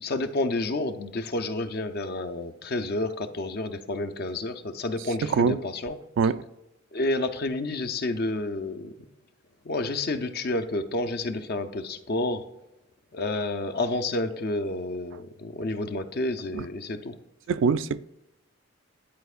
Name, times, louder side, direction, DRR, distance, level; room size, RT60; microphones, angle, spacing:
voice 1, 0.0-6.0 6.9-8.9 9.6-12.4 13.1-17.1, left 2 dB, 50° left, 0.5 m, -30 dB
voice 2, 5.2-5.6 6.2-6.4 16.5-16.6 17.5-18.0, right 5 dB, 65° right, 0.3 m, -23 dB
10.5 x 4.4 x 2.4 m
head